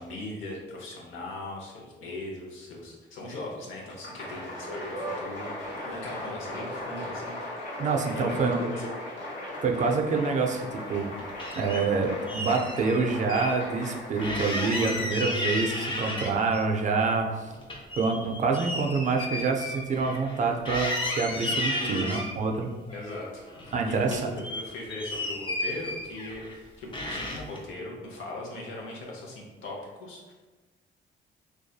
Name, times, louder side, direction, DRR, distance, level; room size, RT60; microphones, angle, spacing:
voice 1, 0.0-7.3 8.1-8.9 10.4-10.5 21.8-22.2 22.9-30.3, left 2 dB, 80° left, -2 dB, 0.7 m, -39 dB
Applause, 3.8-15.7, left 1 dB, 55° left, 1.0 m, -38 dB
voice 2, 7.8-8.6 9.6-11.1 11.6-17.5 18.0-22.7 23.7-24.3, right 4 dB, 40° right, 2 dB, 0.4 m, -27 dB
sound 1, 10.8-11.8 12.3-13.5 13.8-13.9 14.2-16.6 17.0-20.4 20.6-22.3 22.9-23.8 24.0-26.6 26.9-27.6, left 1 dB, 25° left, 0.5 m, -33 dB
2.6 x 2.3 x 2.3 m, 1.3 s
cardioid pair, 90°, 20 cm